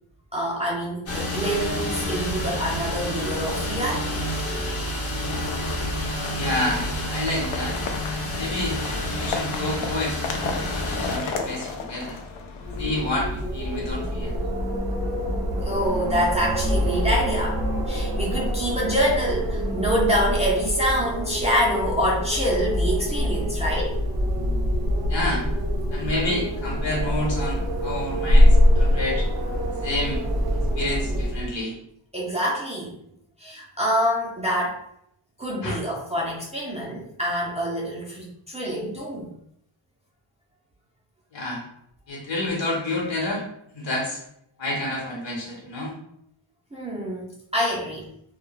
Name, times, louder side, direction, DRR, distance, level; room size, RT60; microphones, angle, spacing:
voice 1, 0.3-4.2 15.6-17.6 17.9-24.0 32.1-33.0 33.4-34.8 35.4-39.3 46.7-48.1, equal, 15° right, -5 dB, 0.4 m, -26 dB
sound 1, 1.1-11.2, left 1 dB, 30° left, 0.6 m, -29 dB
sound 2, 5.2-13.2, left 4 dB, 85° left, 0.5 m, -34 dB
voice 2, 6.4-7.8 8.4-8.8 9.2-10.5 11.1-12.2 12.8-14.3 25.1-25.5 25.9-29.3 29.8-30.2 30.8-31.7 35.6-35.8 41.3-41.6 42.1-43.4 43.7-44.2 44.6-45.9, left 1 dB, 65° left, -2 dB, 1.0 m, -29 dB
Wind, 12.6-31.6, equal, 50° right, 0.7 m, -24 dB
2.2 x 2.2 x 3.1 m, 0.72 s
wide cardioid pair, 140°, 46 cm